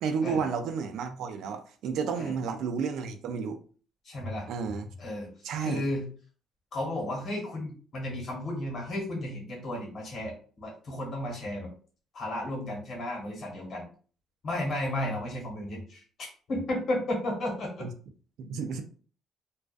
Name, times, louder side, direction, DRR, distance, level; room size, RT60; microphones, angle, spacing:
voice 1, 0.0-3.6 4.5-4.9 5.4-5.9 17.8-17.9 18.4-18.8, right 6 dB, 70° right, 0.4 m, -31 dB
voice 2, 4.0-4.5 5.0-5.3 5.6-6.1 6.7-11.7 12.1-13.9 14.4-17.8, left 1 dB, 50° left, 1.2 m, -33 dB
2.3 x 2.3 x 2.4 m
cardioid pair, 130°, 0 cm